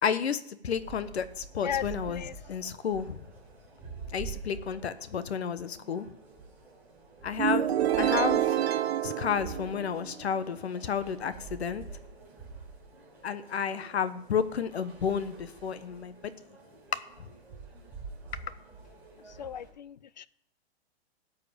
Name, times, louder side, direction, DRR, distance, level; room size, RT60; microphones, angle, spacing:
voice 1, 0.0-2.2 2.5-3.2 4.1-6.1 7.2-7.7 8.0-8.6 9.0-11.8 13.2-16.3, left 7 dB, 85° left, 1.2 m, -31 dB
sound 1, 0.6-19.7, right 4 dB, 5° right, 1.9 m, -47 dB
voice 2, 1.6-2.3 19.4-20.3, left 9 dB, 45° left, 0.4 m, -36 dB
sound 2, 7.4-10.2, right 11 dB, 80° right, 0.9 m, -27 dB
13.0 x 4.8 x 8.7 m
hypercardioid pair, 170°, 31 cm